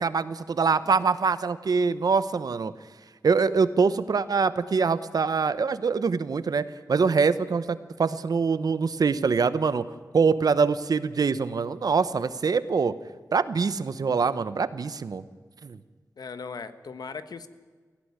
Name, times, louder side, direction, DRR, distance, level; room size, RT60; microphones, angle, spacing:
voice 1, 0.0-2.7 3.2-9.8 10.1-12.9 13.3-15.2 15.6-15.8, right 5 dB, 75° right, 14 dB, 1.0 m, -24 dB
voice 2, 16.2-17.5, left 5 dB, 85° left, 11 dB, 1.3 m, -38 dB
18.0 x 16.5 x 9.7 m, 1.5 s
wide cardioid pair, 110°, 7 cm